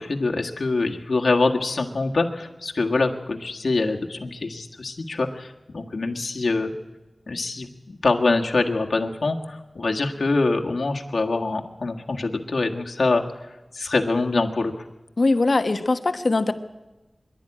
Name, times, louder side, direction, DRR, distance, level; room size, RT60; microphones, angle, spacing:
voice 1, 0.0-6.7 7.3-13.2 13.7-14.7, left 3 dB, 80° left, 1 dB, 1.7 m, -24 dB
voice 2, 15.2-16.5, left 3 dB, 65° left, 9 dB, 1.3 m, -21 dB
23.5 x 11.5 x 9.9 m, 1.1 s
wide cardioid pair, 70°, 0 cm